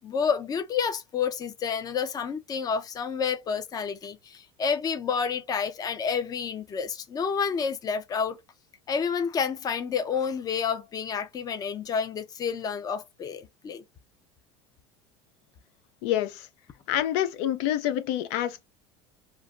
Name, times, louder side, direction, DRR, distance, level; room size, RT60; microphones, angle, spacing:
voice 1, 0.0-8.4 8.9-13.8, left 6 dB, 30° left, 0.5 m, -29 dB
voice 2, 16.9-18.6, left 12 dB, 80° left, 0.4 m, -27 dB
3.1 x 2.0 x 2.5 m
supercardioid pair, 120°, 14 cm